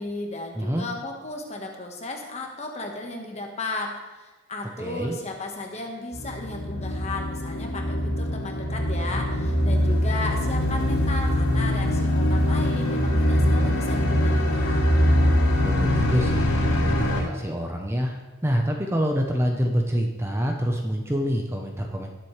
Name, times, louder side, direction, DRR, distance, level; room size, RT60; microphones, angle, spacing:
voice 1, 0.0-14.9, left 2 dB, 30° left, 1 dB, 1.4 m, -35 dB
voice 2, 0.5-0.9 4.8-5.2 15.6-22.1, equal, 10° right, 2 dB, 0.8 m, -26 dB
sound 1, 6.1-17.2, left 1 dB, 85° left, 3.0 m, -23 dB
18.5 x 7.6 x 3.3 m, 1.2 s
head